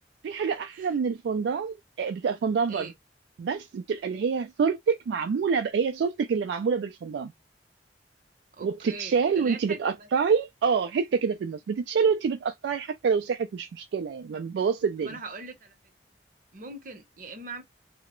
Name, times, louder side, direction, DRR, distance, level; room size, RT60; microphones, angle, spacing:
voice 1, 0.2-2.9 3.4-7.3 8.6-15.2, right 6 dB, 85° right, 0.3 m, -27 dB
voice 2, 8.5-10.1 15.0-15.8 16.5-17.6, right 3 dB, 50° right, 0.7 m, -41 dB
2.3 x 2.0 x 3.0 m
head